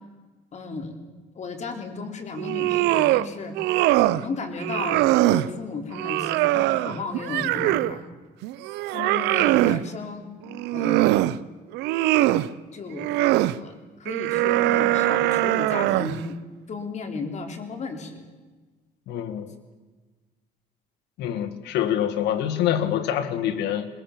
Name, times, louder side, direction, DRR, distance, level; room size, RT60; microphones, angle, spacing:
voice 1, 0.5-1.0 1.4-3.6 4.1-5.0 5.3-8.0 8.9-10.3 10.7-11.2 12.7-13.1 13.4-16.4 16.7-18.2, left 4 dB, 45° left, 5 dB, 3.6 m, -34 dB
sound 1, 2.4-3.3 3.5-4.2 4.6-5.5 5.9-8.0 8.4-9.8 10.5-11.4 11.7-12.5 13.0-13.5 14.1-16.2, right 16 dB, 90° right, 0.6 m, -22 dB
voice 2, 19.1-19.5 21.2-23.9, left 10 dB, 85° left, 8 dB, 1.9 m, -25 dB
22.0 x 20.5 x 7.3 m, 1.3 s
cardioid pair, 110°, 17 cm